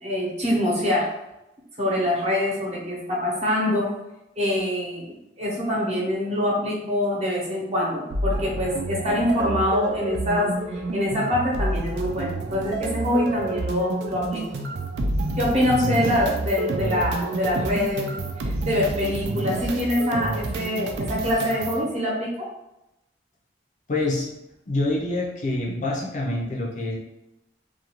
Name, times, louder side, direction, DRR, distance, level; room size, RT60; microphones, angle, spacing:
voice 1, 0.0-1.1 1.8-3.9 4.4-14.6 15.4-18.1 18.6-22.5, left 1 dB, 35° right, -4 dB, 0.8 m, -25 dB
sound 1, 8.1-21.8, right 2 dB, 70° right, 0.3 m, -29 dB
voice 2, 23.9-24.3 24.7-27.0, left 2 dB, 45° left, -3 dB, 0.5 m, -26 dB
2.4 x 2.3 x 2.9 m, 0.90 s
head